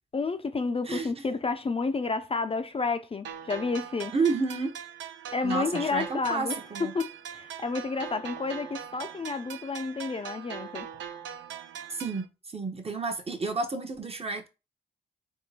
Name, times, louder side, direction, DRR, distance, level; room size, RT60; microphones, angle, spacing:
voice 1, 0.1-4.1 5.3-6.5 6.8-10.9, left 4 dB, 30° left, 0.4 m, -30 dB
voice 2, 0.9-1.3 4.1-4.8 5.4-6.9 11.9-14.5, right 4 dB, 30° right, 0.8 m, -31 dB
sound 1, 3.2-12.2, right 8 dB, 85° right, 0.4 m, -41 dB
3.6 x 2.2 x 4.1 m
cardioid pair, 60°, 19 cm